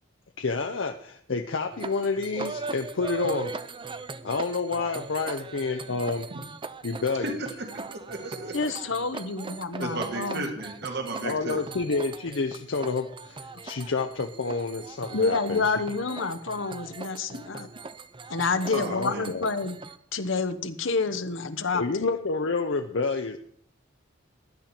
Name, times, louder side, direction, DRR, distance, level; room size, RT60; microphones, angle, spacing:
voice 1, 0.4-3.5 4.2-6.3 6.8-7.4 11.2-15.7 18.9-19.5 21.7-23.4, left 4 dB, 70° left, 5 dB, 0.7 m, -29 dB
sound 1, 1.7-20.0, right 3 dB, 25° right, 0.6 m, -40 dB
voice 2, 7.2-8.6 9.8-11.6 18.7-19.3, right 2 dB, 60° right, 3 dB, 2.1 m, -34 dB
voice 3, 8.5-10.5 15.1-17.7 18.3-19.8 20.1-22.1, left 4 dB, 85° left, 10 dB, 1.2 m, -28 dB
16.0 x 10.5 x 4.4 m, 0.62 s
head